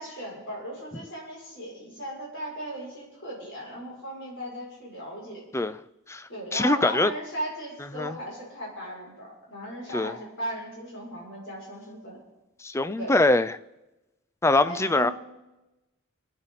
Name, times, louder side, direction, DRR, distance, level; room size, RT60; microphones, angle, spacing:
voice 1, 0.0-5.4 6.3-12.2 13.0-13.2 14.6-15.1, right 1 dB, 60° left, -4 dB, 6.6 m, -37 dB
voice 2, 6.1-7.1 7.9-8.2 9.9-10.2 12.6-13.6 14.4-15.1, left 2 dB, 15° left, 14 dB, 0.4 m, -23 dB
26.5 x 9.7 x 4.1 m, 1.0 s
head